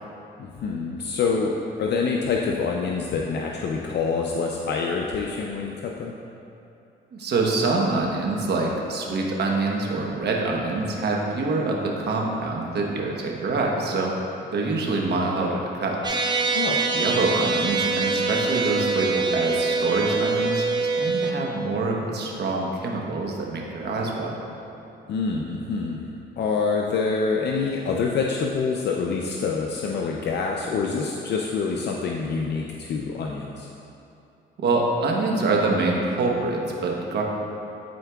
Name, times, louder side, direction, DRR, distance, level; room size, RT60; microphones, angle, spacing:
voice 1, 0.4-1.5 1.8-6.1 16.5-16.8 25.1-26.0 26.4-33.7, left 5 dB, 60° left, 0 dB, 0.5 m, -26 dB
voice 2, 7.1-16.2 16.9-24.5 34.6-37.2, right 3 dB, 55° right, -1 dB, 1.1 m, -25 dB
sound 1, 16.0-21.3, right 4 dB, 20° right, 0.7 m, -24 dB
11.5 x 4.6 x 2.3 m, 2.7 s
cardioid pair, 90°, 20 cm